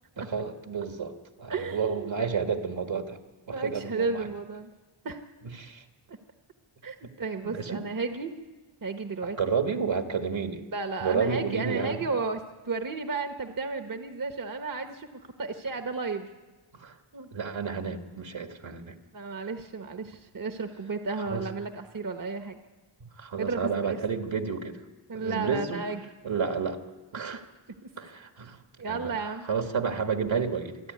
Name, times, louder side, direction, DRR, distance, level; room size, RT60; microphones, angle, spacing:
voice 1, 0.2-3.2 3.5-4.3 5.6-5.8 7.0-7.1 7.4-7.8 9.4-10.6 11.0-12.0 16.7-17.0 17.3-19.0 21.3-21.4 23.0-24.8 25.1-25.8 26.2-26.8 27.1-27.5 28.0-28.6 28.9-29.2 29.5-30.9, right 6 dB, 65° right, 5 dB, 1.8 m, -31 dB
voice 2, 1.5-2.1 3.5-4.7 5.0-5.2 6.1-6.2 6.8-8.3 8.8-9.5 10.7-16.3 17.1-17.3 19.1-22.6 23.4-24.0 25.1-26.0 28.8-29.5, right 4 dB, 40° right, 6 dB, 1.1 m, -33 dB
27.0 x 10.5 x 9.4 m, 1.3 s
wide cardioid pair, 105°, 49 cm